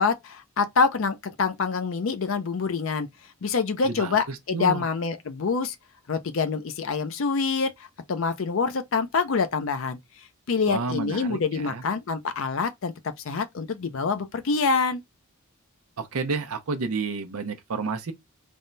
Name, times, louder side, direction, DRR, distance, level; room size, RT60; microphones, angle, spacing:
voice 1, 0.0-3.1 3.4-5.8 6.1-10.0 10.5-15.0, left 5 dB, 65° left, 0.5 m, -26 dB
voice 2, 3.8-4.9 10.7-11.8 16.0-18.1, right 4 dB, 85° right, 0.7 m, -30 dB
3.4 x 2.2 x 3.9 m
head